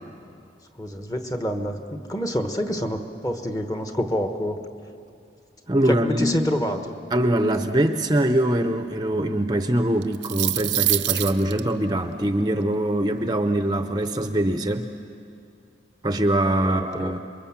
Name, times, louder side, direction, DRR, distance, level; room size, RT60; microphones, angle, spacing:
voice 1, 0.8-4.6 5.8-6.9 16.6-17.1, equal, 20° left, 6 dB, 1.3 m, -27 dB
voice 2, 5.7-6.4 7.1-14.9 16.0-17.2, right 1 dB, 25° right, 7 dB, 0.7 m, -23 dB
sound 1, 10.0-11.6, right 16 dB, 90° right, 0.7 m, -24 dB
27.5 x 23.0 x 7.3 m, 2.5 s
head